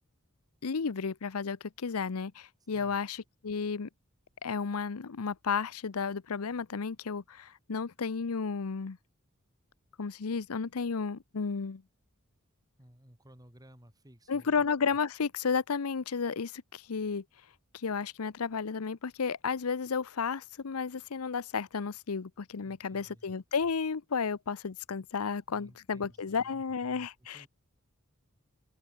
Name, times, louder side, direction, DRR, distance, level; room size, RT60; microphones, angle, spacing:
voice 1, 0.6-3.9 4.4-9.0 10.0-11.8 14.3-17.2 17.7-27.4, left 5 dB, 85° left, 0.7 m, -33 dB
voice 2, 12.8-14.6 22.6-23.2 25.5-26.6 27.3-27.5, equal, 15° right, 4.3 m, -56 dB
head